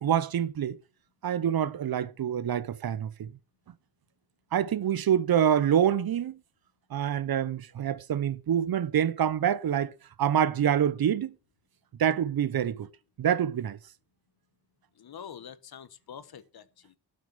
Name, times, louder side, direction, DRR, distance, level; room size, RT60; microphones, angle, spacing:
voice 1, 0.0-0.8 1.2-3.3 4.5-6.4 6.9-9.9 10.2-11.3 12.0-12.9 13.2-13.8, right 9 dB, 55° right, 0.8 m, -26 dB
voice 2, 15.0-17.0, left 8 dB, 60° left, 1.1 m, -46 dB
12.5 x 6.5 x 6.7 m
wide cardioid pair, 130°, 42 cm